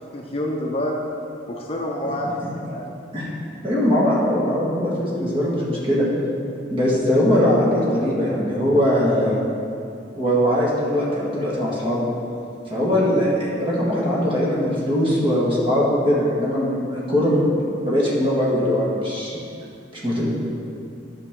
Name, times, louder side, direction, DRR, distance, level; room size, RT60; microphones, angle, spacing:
voice 1, 0.1-1.0 1.5-2.4 2.7-2.9, left 1 dB, 30° left, -1 dB, 0.7 m, -27 dB
voice 2, 3.6-6.1 6.7-9.4 10.2-12.1 12.7-19.3 20.0-20.3, equal, 30° right, -6 dB, 1.8 m, -21 dB
12.0 x 6.0 x 3.7 m, 2.7 s
head